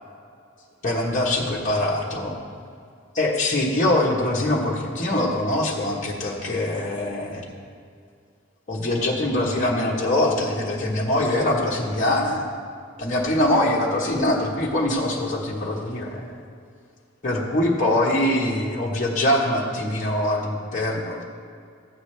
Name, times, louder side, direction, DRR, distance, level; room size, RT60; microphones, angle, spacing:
voice 1, 0.8-2.4 3.1-7.4 8.7-12.5 13.0-16.2 17.2-21.2, left 1 dB, 40° left, -5 dB, 1.2 m, -23 dB
14.5 x 8.2 x 3.3 m, 2.3 s
head